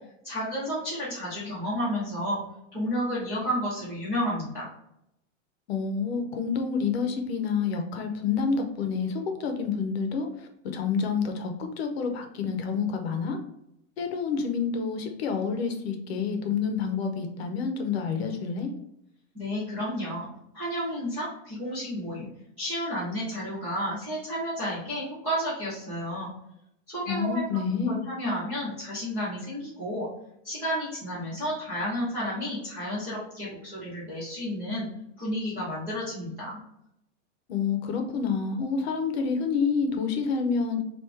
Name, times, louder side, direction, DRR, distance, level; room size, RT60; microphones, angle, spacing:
voice 1, 0.2-2.4 2.7-4.7 19.3-20.3 20.5-22.3 22.6-26.3 26.9-27.4 27.8-30.1 30.4-34.9 35.2-36.6, equal, 5° right, -14 dB, 0.3 m, -31 dB
voice 2, 5.7-13.4 14.0-18.7 27.1-28.0 37.5-40.8, left 5 dB, 60° left, 5 dB, 0.7 m, -28 dB
3.4 x 2.5 x 3.2 m, 0.80 s
supercardioid pair, 180°, 36 cm